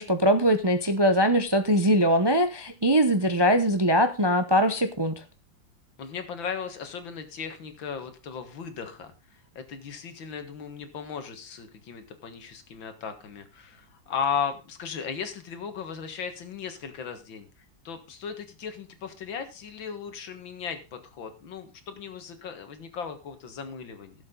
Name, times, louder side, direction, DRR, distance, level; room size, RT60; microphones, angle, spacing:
voice 1, 0.0-5.1, equal, 30° right, 8 dB, 0.5 m, -22 dB
voice 2, 6.0-17.5 17.8-24.1, left 6 dB, 90° left, 8 dB, 2.3 m, -36 dB
16.0 x 7.7 x 3.8 m, 0.30 s
omnidirectional pair, 2.0 m